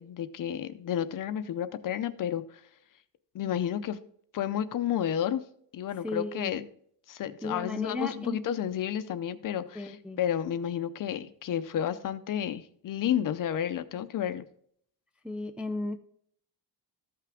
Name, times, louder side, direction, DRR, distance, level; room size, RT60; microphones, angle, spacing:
voice 1, 0.0-2.6 3.3-4.0 4.3-5.4 5.7-6.7 7.1-14.4, left 10 dB, 50° left, 13 dB, 0.6 m, -31 dB
voice 2, 6.0-6.5 7.4-8.4 9.8-10.2 15.2-16.0, left 2 dB, 5° right, 5 dB, 0.4 m, -34 dB
14.0 x 5.8 x 3.5 m, 0.64 s
cardioid pair, 175°, 42 cm